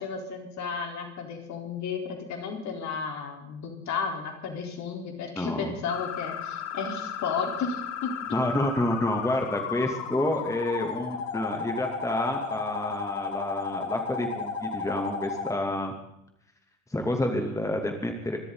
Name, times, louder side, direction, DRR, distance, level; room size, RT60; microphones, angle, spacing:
voice 1, 0.0-8.2, left 5 dB, 45° left, 3 dB, 4.1 m, -33 dB
voice 2, 5.4-5.7 8.3-15.9 16.9-18.4, left 1 dB, 10° left, 3 dB, 2.8 m, -29 dB
sound 1, 5.9-15.5, left 6 dB, 75° left, 2.0 m, -34 dB
26.0 x 13.0 x 4.0 m, 0.79 s
hypercardioid pair, 70°, 38 cm